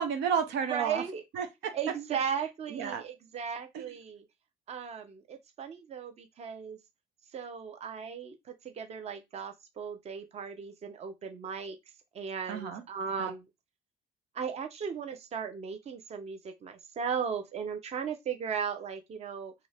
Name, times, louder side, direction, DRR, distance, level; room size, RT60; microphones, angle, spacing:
voice 1, 0.0-1.0 1.3-1.7 2.7-3.0 3.7-3.9 12.5-12.8 13.2-13.3, right 7 dB, 85° right, 0.7 m, -31 dB
voice 2, 0.7-1.2 1.7-4.3 4.7-6.8 7.3-11.8 12.1-13.5 14.3-19.5, right 7 dB, 40° right, 0.6 m, -36 dB
2.7 x 2.5 x 3.2 m
cardioid pair, 110°, 17 cm